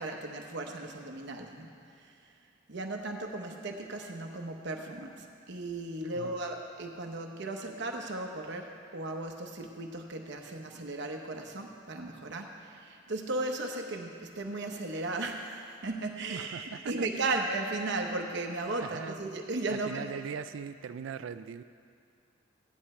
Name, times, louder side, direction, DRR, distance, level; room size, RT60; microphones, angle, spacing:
voice 1, 0.0-1.7 2.0-2.1 2.7-20.0, right 2 dB, 65° right, 2 dB, 0.9 m, -36 dB
voice 2, 16.3-17.3 18.8-19.2 19.7-21.6, right 6 dB, 85° right, 13 dB, 0.4 m, -40 dB
16.0 x 10.5 x 4.3 m, 2.4 s
head